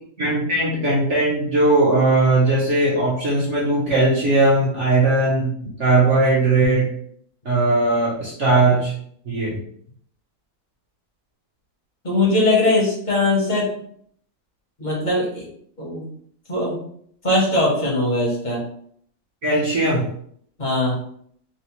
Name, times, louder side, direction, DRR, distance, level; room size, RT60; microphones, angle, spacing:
voice 1, 0.2-6.9 7.4-8.9 9.3-9.6 19.4-20.1, right 2 dB, 65° right, -7 dB, 0.7 m, -19 dB
voice 2, 12.0-13.7 14.8-15.5 15.8-16.1 16.5-16.8 17.2-18.6 20.6-21.0, left 2 dB, 40° left, -4 dB, 0.6 m, -20 dB
4.1 x 2.0 x 2.9 m, 0.63 s
omnidirectional pair, 2.3 m